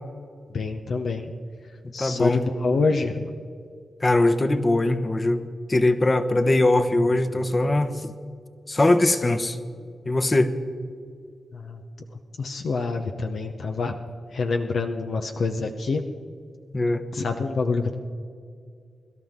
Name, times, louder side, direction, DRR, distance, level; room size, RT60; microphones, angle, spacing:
voice 1, 0.5-1.3 1.9-3.3 11.5-11.8 12.4-14.0 14.3-16.0 17.1-17.9, left 4 dB, 70° left, 5 dB, 0.8 m, -26 dB
voice 2, 1.8-2.5 4.0-8.1 8.7-9.6 10.0-10.5 16.7-17.0, left 2 dB, 35° left, 8 dB, 1.1 m, -21 dB
23.0 x 12.0 x 3.6 m, 2.2 s
supercardioid pair, 40°, 0 cm